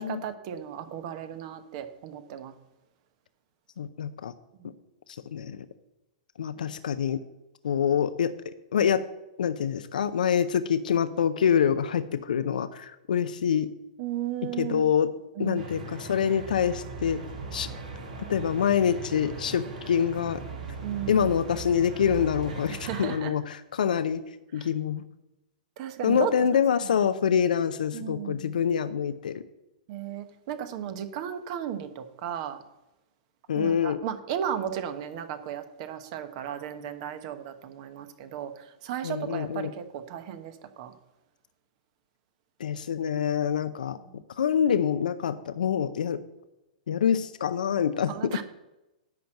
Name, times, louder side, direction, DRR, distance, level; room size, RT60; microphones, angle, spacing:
voice 1, 0.0-2.5 4.6-4.7 14.0-14.9 15.4-16.0 20.8-21.2 22.7-23.3 24.6-24.7 25.8-26.9 27.9-28.5 29.9-32.6 33.5-40.9 44.0-44.2 48.1-48.4, right 10 dB, 50° right, 9 dB, 1.1 m, -35 dB
voice 2, 3.8-4.3 5.3-5.6 6.4-7.2 7.6-8.3 8.7-9.1 9.4-13.7 14.6-15.1 15.4-17.2 17.5-17.7 18.3-20.4 21.1-24.2 24.5-25.0 26.0-29.4 33.5-34.0 39.0-39.7 42.6-44.0 44.4-46.2 46.9-48.4, left 8 dB, 80° left, 12 dB, 0.6 m, -26 dB
sound 1, 15.5-23.2, right 4 dB, 75° right, 2.9 m, -39 dB
10.5 x 4.5 x 7.7 m, 0.95 s
hypercardioid pair, 120°, 4 cm